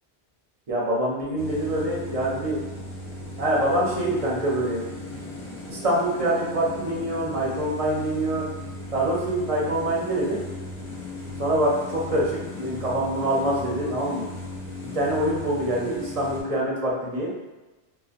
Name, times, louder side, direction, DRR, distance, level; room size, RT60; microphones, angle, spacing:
voice 1, 0.7-2.6 3.4-4.8 5.7-8.5 8.9-10.4 11.4-14.3 14.8-17.3, right 1 dB, 40° right, -4 dB, 0.6 m, -25 dB
sound 1, 1.4-16.4, left 2 dB, 60° left, 0.9 m, -37 dB
2.7 x 2.2 x 2.4 m, 1.1 s
omnidirectional pair, 1.1 m